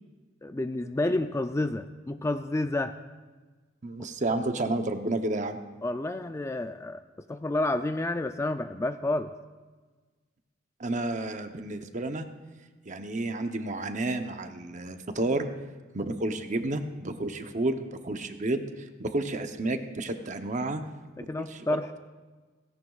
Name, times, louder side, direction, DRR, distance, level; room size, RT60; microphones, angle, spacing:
voice 1, 0.4-2.9 4.0-4.1 5.8-7.0 7.3-9.3 21.3-21.9, left 2 dB, 15° left, 8 dB, 0.3 m, -29 dB
voice 2, 3.8-5.6 10.8-12.3 12.9-15.5 15.9-18.6 19.0-20.8 21.2-21.6, right 2 dB, 40° right, 7 dB, 0.8 m, -31 dB
17.0 x 16.5 x 2.4 m, 1.3 s
head